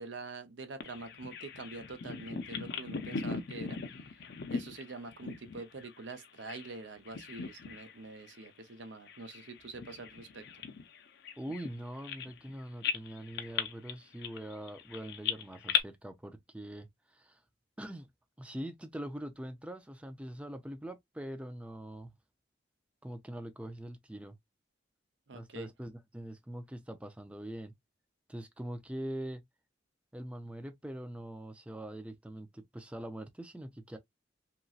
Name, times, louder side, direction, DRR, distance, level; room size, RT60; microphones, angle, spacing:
voice 1, 0.0-3.8 4.5-10.5 25.3-25.7, right 3 dB, 75° right, 0.6 m, -45 dB
Bird vocalization bird call bird song, 0.8-6.8 7.0-8.0 8.3-8.5 9.1-12.5 12.8-15.8, left 6 dB, 60° left, 0.5 m, -38 dB
voice 2, 11.4-17.4 17.8-18.1 18.4-22.1 23.0-24.4 25.3-27.7 28.3-29.4 30.1-34.0, right 1 dB, 5° right, 0.4 m, -43 dB
2.9 x 2.6 x 2.3 m
head